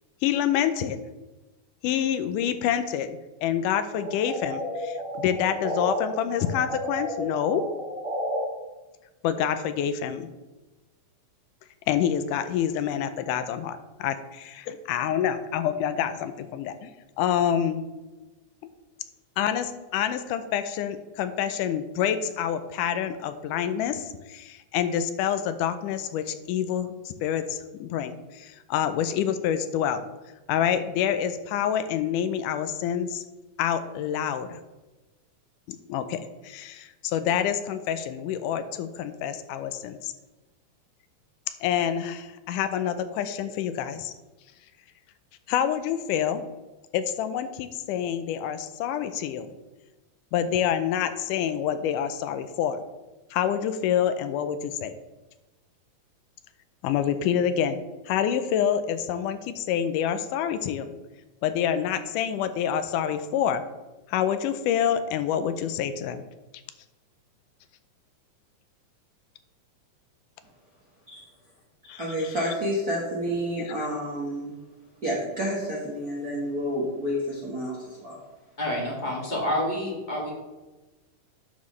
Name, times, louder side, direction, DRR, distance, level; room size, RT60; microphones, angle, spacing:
voice 1, 0.2-1.0 1.8-7.6 9.2-10.3 11.9-16.9 17.2-17.8 19.4-30.0 30.5-33.2 33.6-34.6 35.7-40.1 41.6-44.1 45.5-46.4 46.9-49.5 50.3-52.8 53.3-54.9 56.8-57.8 58.1-60.9 61.4-63.7 64.1-66.2 71.9-72.4 73.7-73.9, left 9 dB, 85° left, 11 dB, 2.1 m, -27 dB
sound 1, 3.9-6.0 6.3-8.4, equal, 25° right, 3.0 m, -32 dB
voice 2, 71.8-74.5 75.0-78.1, equal, 45° right, -5 dB, 1.2 m, -29 dB
voice 3, 78.6-80.3, left 1 dB, 20° left, -3 dB, 1.6 m, -28 dB
11.0 x 6.3 x 3.2 m, 1.1 s
omnidirectional pair, 3.7 m